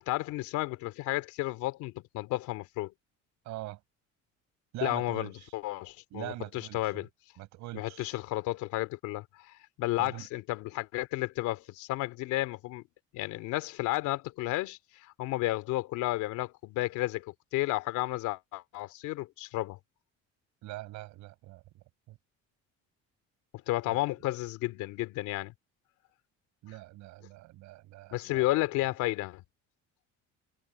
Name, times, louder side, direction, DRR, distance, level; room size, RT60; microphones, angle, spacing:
voice 1, 0.1-2.9 4.8-7.1 7.7-12.8 13.1-19.8 23.7-25.5 28.1-29.4, left 18 dB, 85° left, 3.0 m, -32 dB
voice 2, 3.4-3.8 4.7-5.5 6.1-7.1 7.4-8.2 10.0-10.3 20.6-22.2 23.9-24.0 26.6-28.5, right 17 dB, 75° right, 6.8 m, -43 dB
cardioid pair, 150°, 29 cm